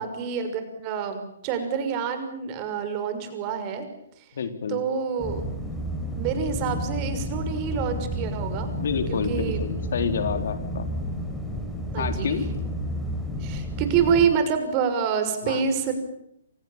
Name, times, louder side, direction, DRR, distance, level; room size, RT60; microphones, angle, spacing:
voice 1, 0.0-3.8 4.7-5.4 6.1-8.7 9.1-9.6 11.9-12.4 13.4-15.9, right 7 dB, 30° right, 8 dB, 6.1 m, -27 dB
voice 2, 4.3-4.8 8.8-10.9 12.0-12.4 15.4-15.7, left 6 dB, 60° left, 8 dB, 3.7 m, -28 dB
sound 1, 5.2-14.3, equal, 5° left, 5.2 m, -31 dB
28.0 x 28.0 x 7.4 m, 0.75 s
figure-of-eight pair, 125°, 0 cm